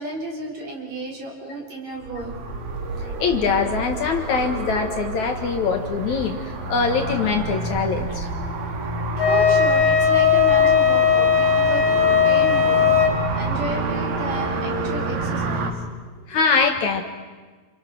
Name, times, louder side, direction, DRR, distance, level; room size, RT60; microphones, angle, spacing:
voice 1, 0.0-2.4 9.3-15.8, right 1 dB, 50° right, -2 dB, 5.3 m, -33 dB
sound 1, 2.0-15.7, right 2 dB, 80° right, 3.9 m, -28 dB
voice 2, 3.2-6.4 6.7-8.3 16.3-17.0, left 5 dB, 60° left, 4 dB, 2.8 m, -22 dB
Wind instrument woodwind instrument, 9.2-13.1, left 7 dB, 25° left, 4.0 m, -17 dB
29.0 x 28.0 x 6.3 m, 1.4 s
omnidirectional pair, 4.0 m